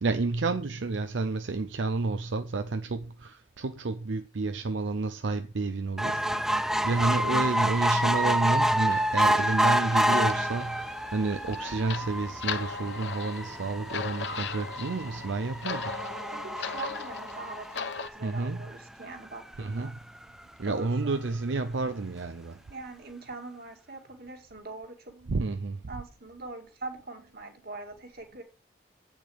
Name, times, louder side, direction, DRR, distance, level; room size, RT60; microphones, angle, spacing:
voice 1, 0.0-6.6 6.8-16.0 18.2-18.6 19.6-20.0 20.6-22.6 25.3-25.8, right 3 dB, 85° right, 0.6 m, -30 dB
sound 1, 6.0-18.6 19.1-19.2 19.5-19.6 19.9-20.0, equal, ahead, 0.5 m, -28 dB
sound 2, 8.9-18.1, left 5 dB, 70° left, 0.9 m, -39 dB
voice 2, 16.3-19.9 20.6-21.4 22.7-25.1 25.9-28.4, right 3 dB, 55° right, 2.2 m, -42 dB
8.4 x 7.2 x 5.0 m
head